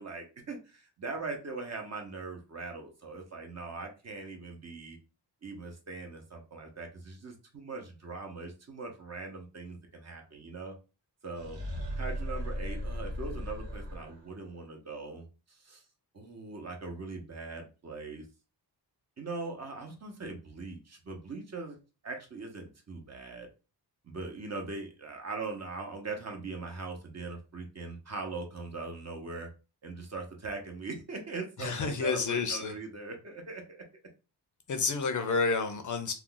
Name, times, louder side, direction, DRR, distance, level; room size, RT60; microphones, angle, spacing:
voice 1, 0.0-5.0 5.4-10.7 11.2-11.6 12.0-15.8 16.1-18.2 19.2-21.8 22.0-23.5 24.0-29.5 29.8-33.9, right 3 dB, 40° right, 0.7 m, -41 dB
sound 1, 11.4-14.4, equal, 85° right, 0.9 m, -36 dB
voice 2, 31.6-32.7 34.7-36.1, left 4 dB, 45° left, 0.5 m, -29 dB
2.4 x 2.3 x 3.7 m
wide cardioid pair, 130°, 42 cm